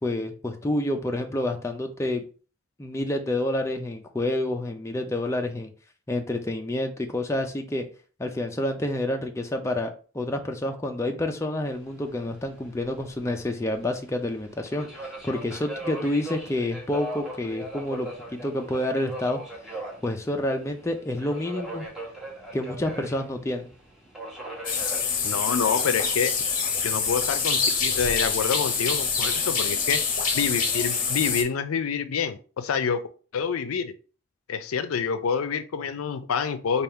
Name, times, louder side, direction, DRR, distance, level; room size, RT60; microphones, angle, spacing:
voice 1, 0.0-2.2 2.8-5.7 6.1-7.9 8.2-19.4 20.0-21.9 22.5-23.7, left 1 dB, 15° left, 4 dB, 0.4 m, -28 dB
Subway metro underground, 11.6-30.1, right 1 dB, 5° right, 1.0 m, -41 dB
sound 1, 24.6-31.4, left 5 dB, 40° left, 0.8 m, -26 dB
voice 2, 25.2-26.3 26.8-30.0 30.3-33.0 33.3-33.9 34.5-36.8, left 6 dB, 90° left, 11 dB, 0.4 m, -27 dB
3.5 x 2.3 x 4.3 m, 0.38 s
head